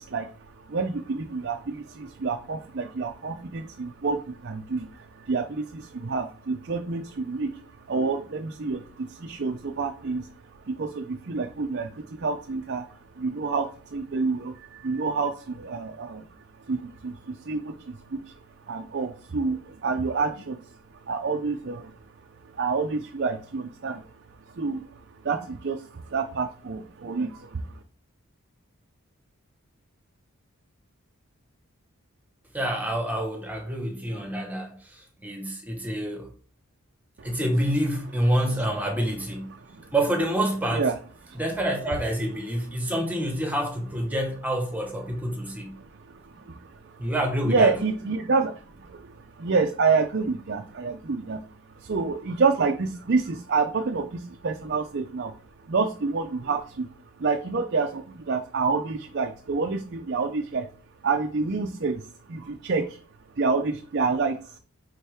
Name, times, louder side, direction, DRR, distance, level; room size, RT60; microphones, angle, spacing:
voice 1, 0.0-20.8 21.1-22.0 22.4-24.1 24.5-27.8 37.2-37.4 39.6-39.9 40.7-41.0 41.3-41.4 45.8-47.1 47.4-55.3 55.6-56.9 57.2-60.7 61.0-63.0 63.3-64.6, right 4 dB, 50° right, 0.5 m, -28 dB
voice 2, 32.5-36.3 37.2-39.5 39.9-40.9 41.3-45.7 47.0-47.8, right 1 dB, 10° right, 1.3 m, -27 dB
8.7 x 4.1 x 3.5 m
head